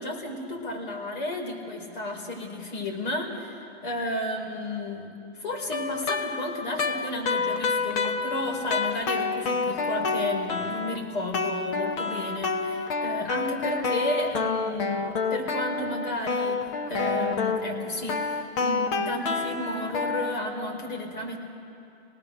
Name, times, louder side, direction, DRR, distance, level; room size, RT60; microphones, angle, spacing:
voice 1, 0.0-21.4, left 2 dB, 50° left, 1 dB, 5.0 m, -33 dB
sound 1, 5.5-11.0 11.3-20.3, left 4 dB, 25° left, 1.0 m, -28 dB
29.0 x 19.0 x 6.7 m, 2.7 s
hypercardioid pair, 160°, 33 cm